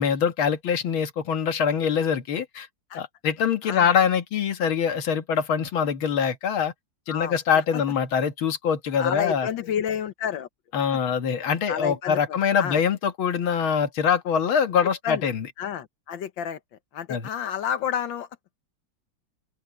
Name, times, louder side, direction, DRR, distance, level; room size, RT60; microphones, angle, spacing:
voice 1, 0.0-2.7 2.9-6.7 7.1-9.5 10.7-15.5 17.1-17.3, left 7 dB, 85° left, 2.3 m, -24 dB
voice 2, 3.6-3.9 7.1-7.4 9.0-10.5 11.7-12.8 15.0-15.3 15.6-16.6 16.9-18.3, left 9 dB, 70° left, 1.8 m, -30 dB
open air
omnidirectional pair, 2.2 m